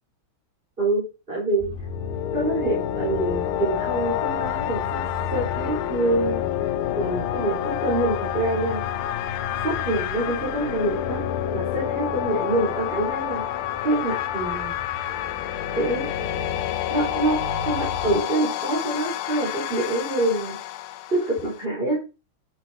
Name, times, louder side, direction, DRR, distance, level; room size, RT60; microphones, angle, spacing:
voice 1, 0.8-1.7 2.3-5.0 5.3-6.4 7.0-9.0 9.6-11.2 11.5-14.7 15.7-16.4 16.9-20.6 21.1-22.0, right 2 dB, 25° right, -6 dB, 4.2 m, -26 dB
sound 1, 1.6-18.2, left 4 dB, 20° left, 2.0 m, -35 dB
sound 2, 1.8-21.7, left 13 dB, 80° left, 1.5 m, -29 dB
10.0 x 7.7 x 2.8 m, 0.29 s
omnidirectional pair, 2.4 m